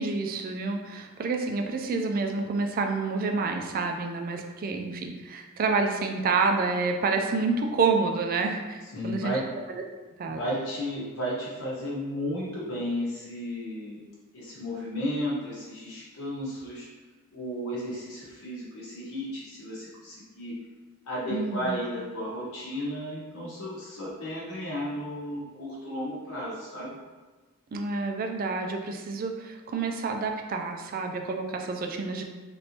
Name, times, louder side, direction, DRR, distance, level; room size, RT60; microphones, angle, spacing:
voice 1, 0.0-9.4 9.7-9.8 10.2-10.4 21.3-21.8 27.7-32.2, right 4 dB, 40° right, 3 dB, 0.3 m, -28 dB
voice 2, 8.9-9.5 10.3-14.0 14.3-16.9 17.3-20.5 21.1-26.9, equal, 65° left, -7 dB, 0.9 m, -33 dB
3.2 x 2.5 x 2.8 m, 1.3 s
head